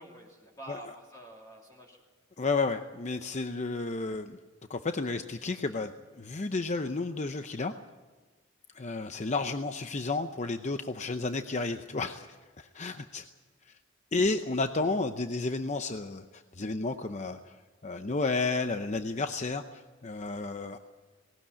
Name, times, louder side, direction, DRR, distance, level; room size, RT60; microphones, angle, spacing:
voice 1, 0.0-2.0, right 1 dB, 20° left, -3 dB, 3.0 m, -47 dB
voice 2, 2.4-4.4 4.7-5.9 6.2-7.7 8.7-12.3 12.6-13.3 14.1-17.6 17.8-20.8, left 3 dB, 35° left, 8 dB, 0.7 m, -32 dB
19.0 x 18.0 x 8.7 m, 1.3 s
head